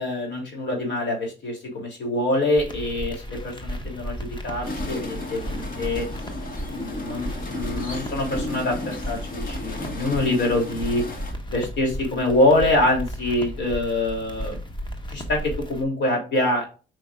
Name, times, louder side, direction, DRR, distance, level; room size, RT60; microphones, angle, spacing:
voice 1, 0.0-6.0 6.7-11.0 11.5-14.6 15.1-16.7, left 1 dB, 65° left, 0 dB, 3.1 m, -25 dB
sound 1, 2.6-15.8, equal, 25° left, 1.2 m, -34 dB
sound 2, 4.6-11.3, left 2 dB, 45° left, 1.6 m, -34 dB
7.6 x 5.3 x 2.5 m, 0.35 s
cardioid pair, 90°, 20 cm